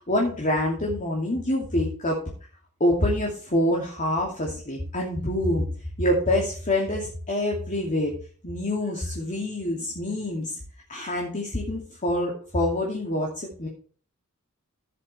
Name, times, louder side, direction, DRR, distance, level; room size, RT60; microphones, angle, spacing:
voice 1, 0.1-2.2 2.8-5.7 6.0-8.1 8.4-10.6 10.9-13.7, left 1 dB, 35° left, -2 dB, 2.6 m, -26 dB
15.5 x 7.6 x 3.3 m, 0.42 s
head